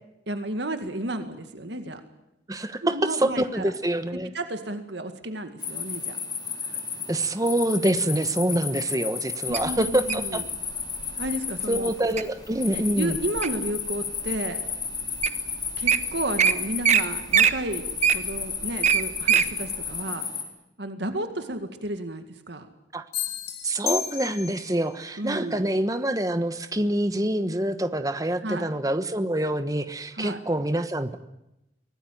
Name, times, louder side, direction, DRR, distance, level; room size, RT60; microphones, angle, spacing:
voice 1, 0.3-2.0 2.8-3.7 4.3-6.2 9.5-10.4 11.2-11.9 12.7-14.6 15.8-20.3 20.8-22.7 25.2-25.7 28.4-28.7 30.2-30.4, right 1 dB, 65° right, 8 dB, 2.0 m, -32 dB
voice 2, 2.5-4.3 7.1-10.4 11.7-13.1 22.9-23.0 23.6-31.2, right 1 dB, 20° right, 10 dB, 1.2 m, -26 dB
sound 1, 5.6-20.4, left 6 dB, 20° left, 4.1 m, -33 dB
Wild animals, 9.5-10.3 11.0-11.3 11.8-12.2 12.7-13.7 14.3-14.4 15.0-15.1 15.2-15.4 15.7-16.0 16.4-16.5 16.8-17.0 17.3-19.5 19.9-20.0, right 7 dB, 35° right, 1.1 m, -21 dB
sound 2, 23.1-24.8, left 9 dB, 55° left, 2.2 m, -32 dB
24.5 x 18.5 x 9.3 m, 0.90 s
head